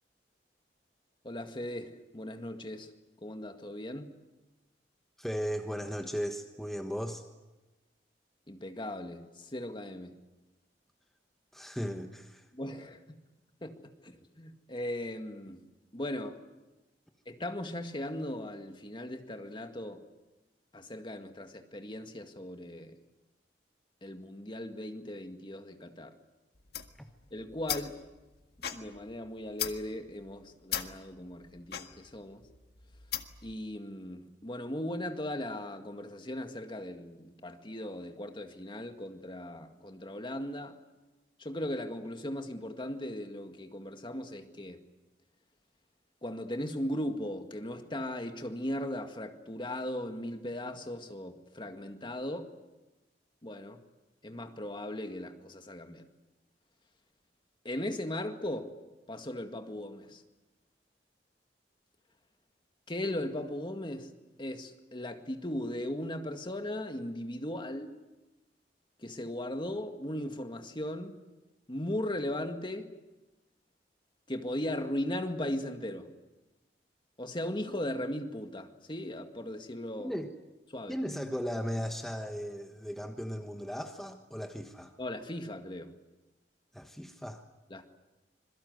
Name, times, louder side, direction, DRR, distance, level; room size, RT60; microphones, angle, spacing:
voice 1, 1.2-2.9 3.2-4.1 8.5-10.2 12.5-13.0 13.6-15.6 15.9-16.4 17.3-20.0 20.7-23.0 24.0-26.1 27.3-28.0 28.7-32.4 33.4-40.8 41.4-44.8 46.2-52.5 53.4-53.8 54.2-56.1 57.6-58.7 59.1-60.2 62.9-64.1 64.4-68.0 69.0-71.2 71.7-72.9 74.3-76.1 77.2-80.1 80.7-81.0 85.0-85.9 87.7-87.8, left 1 dB, 30° left, 1.9 m, -38 dB
voice 2, 5.2-7.2 11.5-12.4 80.0-80.3 80.9-84.9 86.7-87.4, equal, ahead, 1.3 m, -36 dB
sound 1, 26.6-33.5, left 10 dB, 65° left, 1.8 m, -40 dB
26.5 x 22.5 x 8.0 m
head